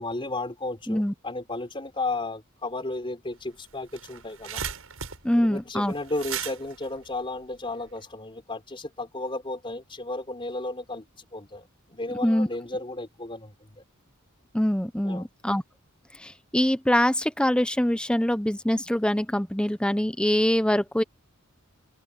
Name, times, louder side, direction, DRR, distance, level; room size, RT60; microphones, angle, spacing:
voice 1, 0.0-4.6 5.3-13.8 15.0-15.3, left 2 dB, 25° left, 4.0 m, -34 dB
sound 1, 3.4-3.5 3.7-8.0, right 8 dB, 90° right, 7.1 m, -37 dB
voice 2, 5.2-5.9 12.2-12.5 14.5-15.6 16.2-21.0, left 1 dB, 5° left, 0.8 m, -24 dB
head